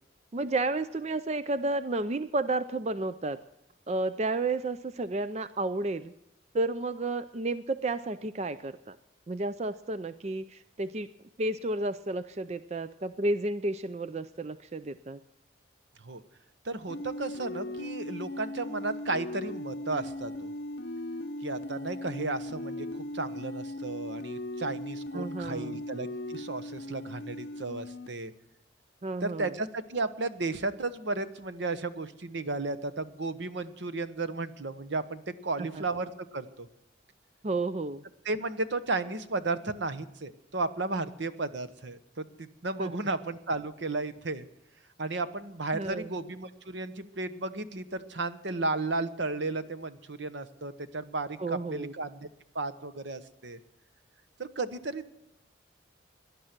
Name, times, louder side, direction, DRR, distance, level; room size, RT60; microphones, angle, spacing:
voice 1, 0.3-3.4 3.9-6.1 6.5-9.0 9.3-11.1 11.4-15.2 25.1-25.8 29.0-29.5 35.7-35.8 37.4-38.0 42.8-42.9 45.7-46.1 51.4-51.9, right 2 dB, 35° right, 13 dB, 0.4 m, -31 dB
voice 2, 16.6-20.5 21.4-28.3 29.2-36.7 38.2-44.5 45.0-52.3 52.5-53.6 54.4-55.1, right 3 dB, 70° right, 12 dB, 1.1 m, -34 dB
sound 1, 16.9-28.1, left 1 dB, 65° left, 0.8 m, -38 dB
18.0 x 11.0 x 6.0 m, 0.85 s
head